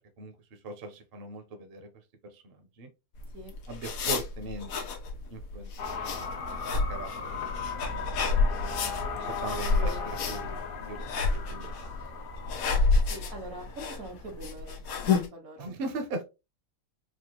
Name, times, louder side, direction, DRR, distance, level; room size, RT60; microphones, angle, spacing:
voice 1, 0.2-1.9 2.2-2.9 3.7-4.7 5.3-6.2 6.5-8.2 9.3-11.7 15.6-16.2, right 2 dB, 50° right, 0.9 m, -40 dB
sound 1, 3.2-15.3, left 4 dB, 85° left, 1.2 m, -30 dB
sound 2, 5.8-14.4, left 5 dB, 50° left, 0.8 m, -38 dB
voice 2, 9.5-10.2 13.1-15.7, right 1 dB, 85° right, 2.0 m, -43 dB
4.2 x 2.4 x 2.8 m
omnidirectional pair, 1.5 m